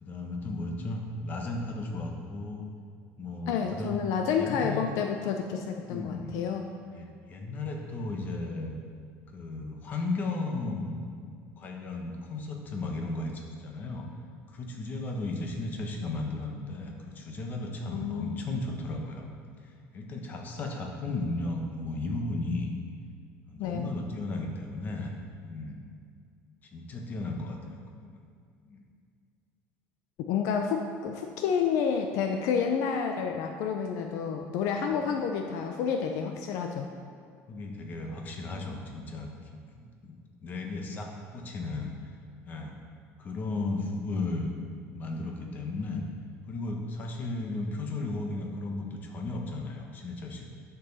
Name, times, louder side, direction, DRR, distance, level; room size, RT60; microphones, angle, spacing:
voice 1, 0.0-2.7 3.2-4.0 4.4-4.9 5.9-6.3 6.9-8.8 9.3-11.0 11.6-14.1 14.5-19.3 19.9-22.7 23.5-25.1 25.4-25.8 26.6-28.2 28.6-28.8 34.9-35.1 37.5-39.3 39.8-41.9 42.4-42.8 43.2-44.5 44.9-46.0 46.5-50.5, left 2 dB, 30° left, 2 dB, 1.2 m, -35 dB
voice 2, 3.5-6.7 17.9-18.5 23.6-23.9 30.3-36.9, left 6 dB, 70° left, 4 dB, 0.6 m, -29 dB
10.0 x 7.0 x 4.1 m, 2.2 s
cardioid pair, 150°, 6 cm